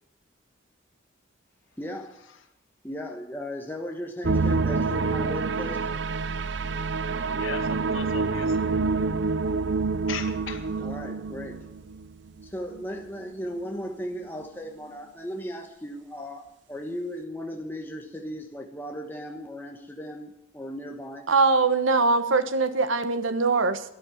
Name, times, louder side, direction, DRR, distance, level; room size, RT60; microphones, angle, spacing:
voice 1, 1.8-2.1 2.8-5.9 10.8-11.6 12.4-21.3, equal, 10° left, 2 dB, 1.2 m, -36 dB
sound 1, 4.2-12.5 12.7-13.1 13.6-13.7, right 4 dB, 65° right, 0.5 m, -27 dB
voice 2, 7.3-8.8 10.1-10.7, left 5 dB, 90° left, 7 dB, 2.0 m, -38 dB
voice 3, 21.3-23.9, right 3 dB, 90° right, 11 dB, 1.2 m, -22 dB
13.5 x 10.5 x 9.6 m, 0.83 s
head